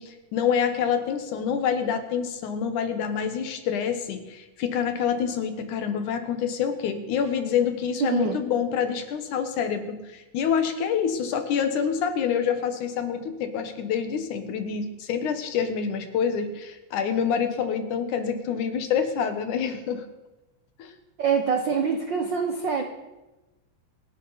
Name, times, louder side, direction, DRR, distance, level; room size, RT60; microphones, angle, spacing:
voice 1, 0.0-20.0 20.8-20.9, left 7 dB, 75° left, 8 dB, 2.7 m, -27 dB
voice 2, 8.0-8.4 21.2-22.8, right 5 dB, 70° right, 4 dB, 1.1 m, -25 dB
26.5 x 11.0 x 4.1 m, 1.1 s
omnidirectional pair, 3.7 m